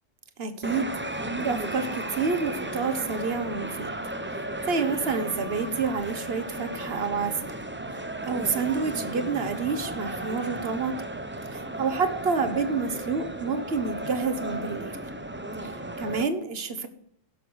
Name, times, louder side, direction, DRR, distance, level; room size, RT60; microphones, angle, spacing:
voice 1, 0.4-0.9 1.4-3.9 4.3-7.3 7.9-10.9 11.5-14.9 15.6-16.9, right 5 dB, 60° right, 11 dB, 1.3 m, -29 dB
sound 1, 0.6-16.2, right 1 dB, 10° right, 0.6 m, -34 dB
16.5 x 6.8 x 6.2 m, 0.70 s
omnidirectional pair, 1.2 m